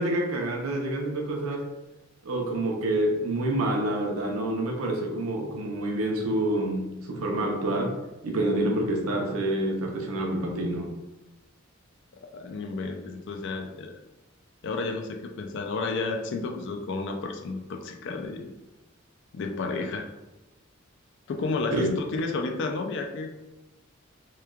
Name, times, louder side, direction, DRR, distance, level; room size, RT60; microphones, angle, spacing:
voice 1, 0.0-1.7 2.2-8.0 8.2-10.9 21.7-21.9, right 1 dB, 90° right, 2 dB, 0.5 m, -27 dB
voice 2, 12.3-13.9 14.6-18.5 19.3-20.1 21.3-23.3, left 3 dB, 60° left, 3 dB, 0.3 m, -31 dB
3.0 x 2.2 x 2.3 m, 1.0 s
head